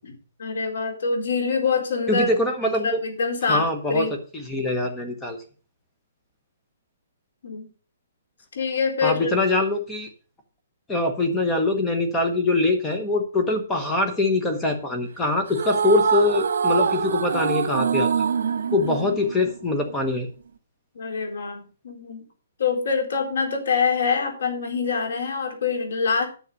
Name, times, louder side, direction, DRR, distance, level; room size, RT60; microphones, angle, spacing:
voice 1, 0.4-2.4 2.8-4.1 7.4-7.6 8.5-9.3 20.9-22.2 22.6-26.3, left 5 dB, 70° left, 4 dB, 4.2 m, -25 dB
voice 2, 2.1-2.9 3.5-4.1 4.5-5.4 9.0-10.1 10.9-18.1 18.7-20.3, left 2 dB, 10° left, 4 dB, 1.0 m, -23 dB
sound 1, 15.5-19.9, right 6 dB, 80° right, 0.9 m, -24 dB
9.7 x 6.4 x 6.4 m, 0.37 s
hypercardioid pair, 175°, 0 cm